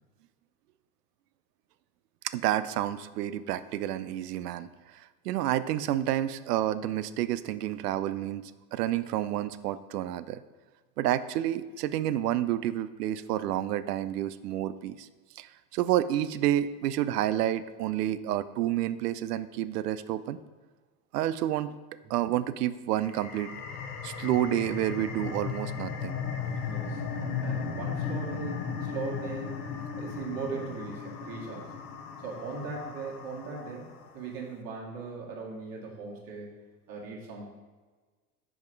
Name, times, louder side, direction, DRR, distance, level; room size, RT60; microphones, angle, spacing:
voice 1, 2.2-10.4 11.0-15.1 15.4-20.4 21.1-21.8 22.1-23.5 24.0-26.2, right 12 dB, 80° right, 14 dB, 0.5 m, -29 dB
sound 1, 22.9-34.1, left 6 dB, 80° left, 1.0 m, -36 dB
voice 2, 26.6-29.5 29.9-31.7 32.2-36.6 36.9-37.5, right 4 dB, 45° right, -3 dB, 2.0 m, -39 dB
5.4 x 5.0 x 4.6 m, 1.3 s
hypercardioid pair, 100°, 46 cm